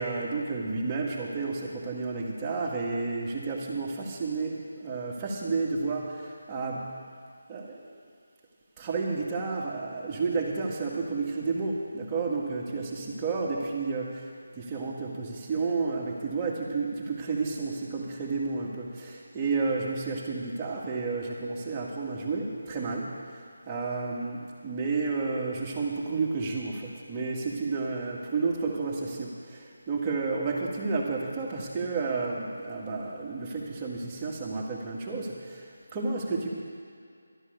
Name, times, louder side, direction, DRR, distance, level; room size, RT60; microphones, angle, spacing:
voice 1, 0.0-7.0 7.5-7.9 8.8-36.5, right 4 dB, 20° right, -4 dB, 2.0 m, -31 dB
12.5 x 11.0 x 6.8 m, 2.3 s
figure-of-eight pair, 160°, 0 cm